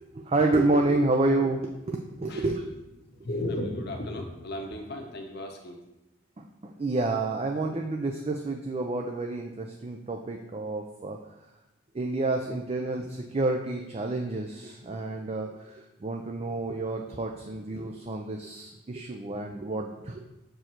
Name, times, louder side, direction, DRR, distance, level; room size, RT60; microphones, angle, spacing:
voice 1, 0.0-2.6 6.4-11.2 11.9-20.2, right 2 dB, 30° right, 2 dB, 0.4 m, -29 dB
voice 2, 3.1-5.8, left 1 dB, 55° left, 3 dB, 1.0 m, -34 dB
6.6 x 4.5 x 4.4 m, 0.96 s
head